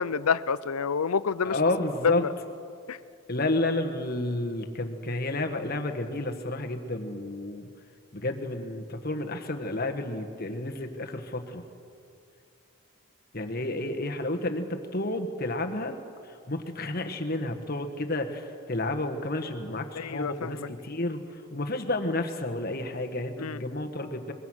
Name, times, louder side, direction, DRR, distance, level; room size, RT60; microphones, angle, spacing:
voice 1, 0.0-1.6 2.0-2.3 2.9-3.0 19.9-20.7 23.4-23.6, left 5 dB, 80° left, 17 dB, 0.6 m, -28 dB
voice 2, 1.4-2.2 3.3-7.7 8.1-11.6 13.3-15.9 16.3-24.3, left 2 dB, 45° left, 5 dB, 1.4 m, -31 dB
23.5 x 21.5 x 6.3 m, 2.4 s
head